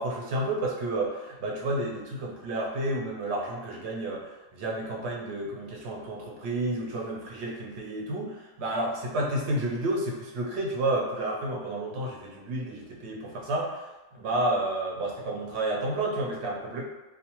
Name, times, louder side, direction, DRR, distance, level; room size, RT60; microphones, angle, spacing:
voice 1, 0.0-13.8 14.1-16.8, right 1 dB, 65° right, -2 dB, 0.7 m, -31 dB
2.5 x 2.0 x 2.8 m, 1.1 s
omnidirectional pair, 1.4 m